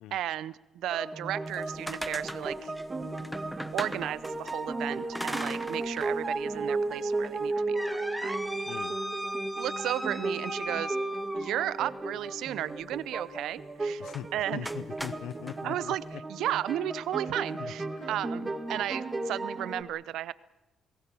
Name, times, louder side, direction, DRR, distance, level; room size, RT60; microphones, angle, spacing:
voice 1, 0.1-2.7 3.7-8.4 9.5-11.0 11.3-14.0 14.3-14.7 15.6-20.3, right 12 dB, 80° right, 18 dB, 0.7 m, -34 dB
sound 1, 0.9-19.8, right 2 dB, 25° right, 2.5 m, -35 dB
sound 2, 1.5-4.6 5.1-6.1 6.5-6.6 7.2-11.9 14.0-14.3 14.6-15.6, equal, ahead, 1.1 m, -38 dB
voice 2, 14.5-15.9 17.6-18.1, left 11 dB, 90° left, 19 dB, 0.7 m, -41 dB
28.0 x 18.5 x 7.0 m, 1.0 s
cardioid pair, 90°, 0 cm